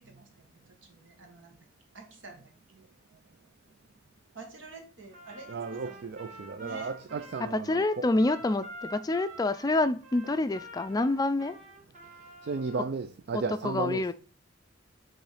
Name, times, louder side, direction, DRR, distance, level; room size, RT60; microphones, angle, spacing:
voice 1, 0.0-1.7 1.9-2.8 4.3-6.0 6.6-7.3, right 2 dB, 80° right, 1.7 m, -49 dB
Trumpet, 5.1-12.9, right 1 dB, 40° right, 2.2 m, -48 dB
voice 2, 5.5-8.1 12.4-14.1, right 4 dB, 60° right, 0.4 m, -34 dB
voice 3, 7.7-11.6 13.3-14.1, left 2 dB, 20° left, 0.4 m, -27 dB
8.0 x 3.1 x 5.0 m
head